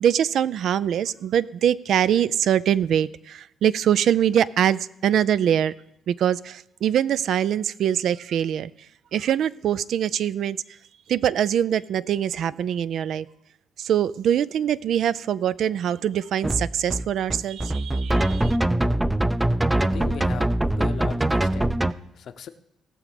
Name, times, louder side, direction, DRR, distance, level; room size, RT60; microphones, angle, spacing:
voice 1, 0.0-5.7 6.1-8.7 9.1-10.6 11.1-13.3 13.8-18.6, right 9 dB, 70° right, 18 dB, 0.4 m, -23 dB
sound 1, 16.4-21.9, right 1 dB, 10° right, 0.5 m, -23 dB
voice 2, 19.8-21.7 22.1-22.5, left 8 dB, 65° left, 11 dB, 0.7 m, -37 dB
18.0 x 6.4 x 5.1 m, 0.77 s
cardioid pair, 90°, 0 cm